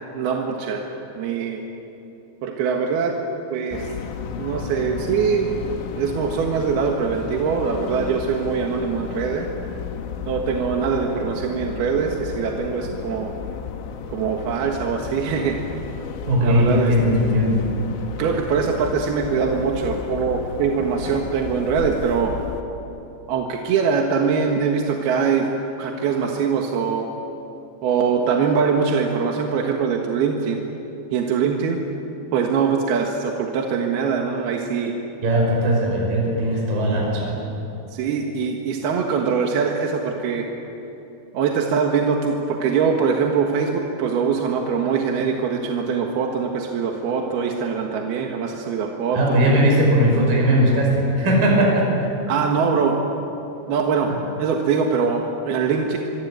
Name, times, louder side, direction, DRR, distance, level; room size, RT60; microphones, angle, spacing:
voice 1, 0.1-0.9 1.2-1.6 2.4-3.2 3.5-3.9 4.4-5.5 5.9-9.5 10.3-13.3 14.1-15.6 16.4-16.9 18.2-22.4 23.3-25.5 25.8-27.1 27.8-30.6 31.1-31.8 32.3-34.9 37.9-40.5 41.3-49.4 52.3-53.0 53.7-54.1 54.4-56.0, right 6 dB, 65° right, 1 dB, 3.2 m, -22 dB
sound 1, 3.7-22.6, left 7 dB, 85° left, 3.9 m, -33 dB
voice 2, 16.3-17.6 35.2-37.4 49.1-52.1 54.0-54.2, equal, 50° right, -1 dB, 6.9 m, -19 dB
25.5 x 24.5 x 9.4 m, 3.0 s
omnidirectional pair, 5.3 m